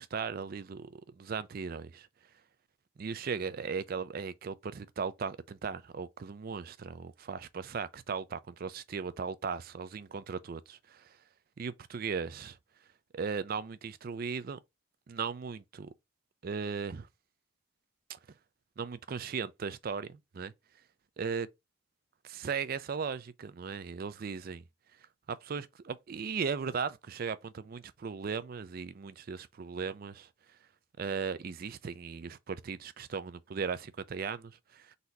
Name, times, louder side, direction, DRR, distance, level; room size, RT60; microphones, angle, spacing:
voice 1, 0.0-2.1 3.0-11.2 11.6-12.6 13.1-14.6 15.1-15.9 16.4-17.1 18.1-18.2 18.8-20.5 21.2-21.5 22.2-24.6 25.3-30.3 31.0-35.0, right 5 dB, 45° right, 0.4 m, -37 dB
4.0 x 2.7 x 4.5 m
head